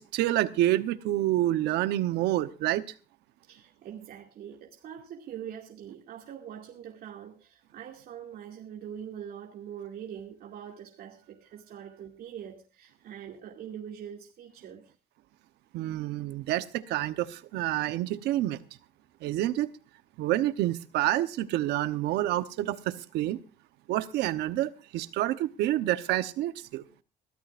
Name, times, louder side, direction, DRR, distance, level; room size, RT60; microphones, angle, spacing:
voice 1, 0.0-2.8 15.7-18.6 19.2-19.7 20.2-23.4 23.9-26.8, right 14 dB, 85° right, 13 dB, 0.9 m, -28 dB
voice 2, 3.4-14.9, right 9 dB, 65° right, 1 dB, 2.4 m, -43 dB
22.5 x 13.5 x 2.5 m, 0.34 s
cardioid pair, 110°, 17 cm